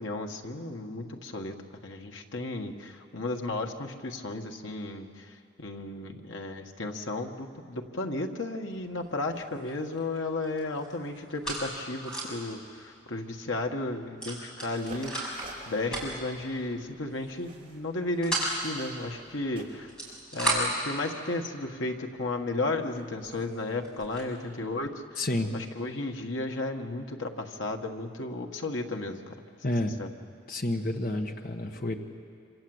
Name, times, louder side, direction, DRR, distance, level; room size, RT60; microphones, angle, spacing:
voice 1, 0.0-1.6 1.8-15.3 15.7-19.9 20.3-25.2 25.5-29.3 30.0-30.1, left 2 dB, 85° left, 3 dB, 1.8 m, -34 dB
sound 1, 8.8-9.1 9.3-10.2 10.4-12.5 12.9-13.0 13.2-13.4 14.2-15.5 15.9-16.3 17.1-17.4 17.8-18.6 19.7-20.9 21.6-21.7 22.3-22.4 22.9-23.0 23.2-24.3, right 1 dB, 5° left, 6.3 m, -33 dB
sound 2, 14.7-20.2, right 2 dB, 30° right, 5.5 m, -50 dB
voice 2, 25.2-25.5 29.6-29.9 30.5-31.9, left 1 dB, 45° left, 4 dB, 1.4 m, -29 dB
26.5 x 26.0 x 8.1 m, 2.5 s
head